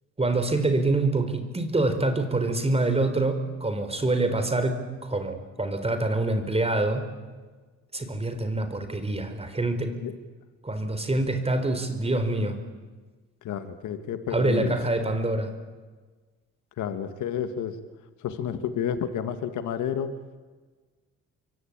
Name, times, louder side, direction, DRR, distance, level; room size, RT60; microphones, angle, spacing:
voice 1, 0.2-4.8 5.1-7.0 7.9-9.9 10.6-12.6 14.3-15.5, right 2 dB, 20° right, 8 dB, 4.1 m, -25 dB
voice 2, 13.4-14.8 16.8-17.8 18.2-20.1, left 8 dB, 80° left, 9 dB, 1.7 m, -30 dB
26.0 x 24.0 x 8.8 m, 1.4 s
cardioid pair, 90°, 30 cm